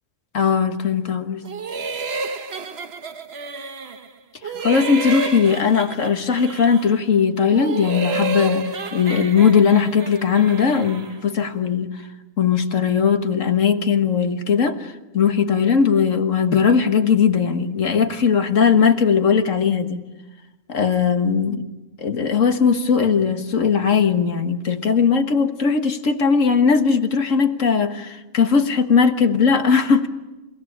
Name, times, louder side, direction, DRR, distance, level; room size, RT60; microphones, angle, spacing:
voice 1, 0.3-1.4 4.6-11.9 12.4-20.0 20.7-21.6 22.0-30.1, left 6 dB, 70° left, 7 dB, 1.8 m, -19 dB
sound 1, 1.4-4.1 4.4-7.0 7.4-11.2, right 3 dB, 50° right, 1.3 m, -30 dB
30.0 x 17.0 x 8.6 m, 1.1 s
omnidirectional pair, 1.4 m